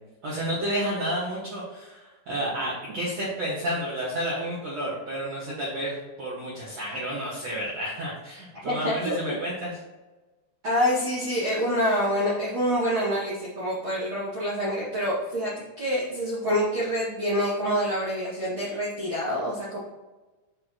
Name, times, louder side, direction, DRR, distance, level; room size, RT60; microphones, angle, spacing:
voice 1, 0.2-9.8, equal, 80° right, -9 dB, 1.5 m, -31 dB
voice 2, 8.6-9.2 10.6-19.8, equal, 50° right, -11 dB, 2.1 m, -26 dB
8.9 x 4.3 x 3.0 m, 1.2 s
omnidirectional pair, 5.9 m